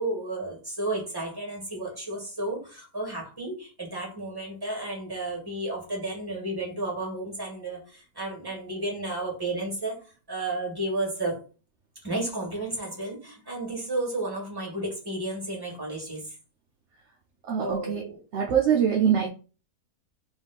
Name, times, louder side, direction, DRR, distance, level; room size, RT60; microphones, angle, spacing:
voice 1, 0.0-9.9 10.3-11.4 12.0-16.2 17.6-18.2, right 2 dB, 15° right, -2 dB, 1.7 m, -32 dB
voice 2, 17.5-18.1 18.3-19.3, right 8 dB, 65° right, 1 dB, 0.7 m, -23 dB
3.5 x 3.0 x 4.0 m, 0.35 s
omnidirectional pair, 1.7 m